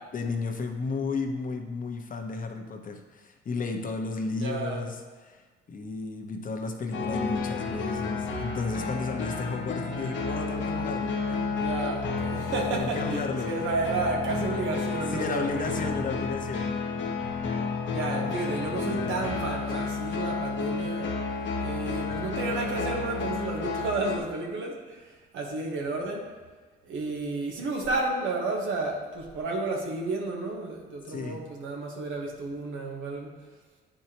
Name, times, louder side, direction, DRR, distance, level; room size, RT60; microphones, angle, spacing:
voice 1, 0.1-5.0 5.2-5.4 5.7-11.4 12.7-13.5 15.1-16.8 31.1-31.4, left 3 dB, 45° left, 4 dB, 0.8 m, -33 dB
voice 2, 4.4-4.8 11.5-15.9 17.9-21.1 21.6-26.3 26.8-33.4, right 3 dB, 85° right, 0 dB, 1.3 m, -32 dB
sound 1, 6.9-24.2, left 4 dB, 70° left, 1.0 m, -31 dB
9.1 x 4.5 x 3.0 m, 1.4 s
cardioid pair, 90°, 20 cm